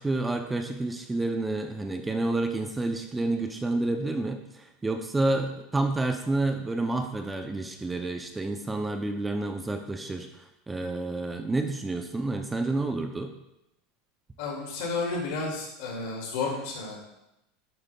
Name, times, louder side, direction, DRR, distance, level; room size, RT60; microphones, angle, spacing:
voice 1, 0.0-13.3, right 2 dB, 10° right, 6 dB, 0.4 m, -29 dB
voice 2, 14.4-17.0, left 4 dB, 70° left, -1 dB, 2.0 m, -32 dB
9.6 x 5.1 x 2.2 m, 0.87 s
supercardioid pair, 150°, 0 cm